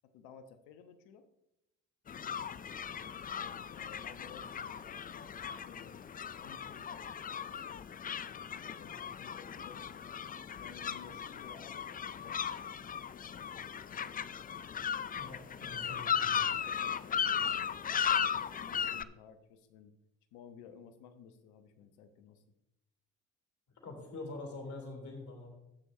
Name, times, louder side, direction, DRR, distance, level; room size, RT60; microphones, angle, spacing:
voice 1, 0.0-1.3 3.3-6.0 6.4-7.8 8.5-10.0 10.5-12.8 13.4-14.4 15.6-16.1 16.7-18.0 18.6-19.9 20.3-22.4, left 7 dB, 75° left, 10 dB, 0.9 m, -56 dB
sound 1, 2.1-19.0, left 8 dB, 25° left, 0.4 m, -37 dB
voice 2, 15.1-16.4 23.8-25.5, left 2 dB, 50° left, 2 dB, 3.3 m, -45 dB
16.0 x 6.3 x 2.7 m, 0.88 s
hypercardioid pair, 55°, 36 cm